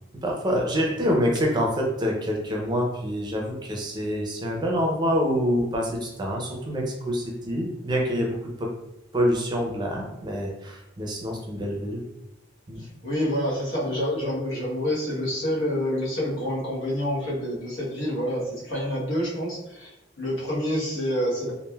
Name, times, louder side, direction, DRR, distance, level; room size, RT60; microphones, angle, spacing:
voice 1, 0.2-8.7 9.1-12.0 12.7-12.8, equal, 25° right, -1 dB, 0.5 m, -26 dB
voice 2, 12.8-19.9 20.2-21.5, equal, 85° left, -5 dB, 1.0 m, -27 dB
3.1 x 2.4 x 2.2 m, 0.92 s
head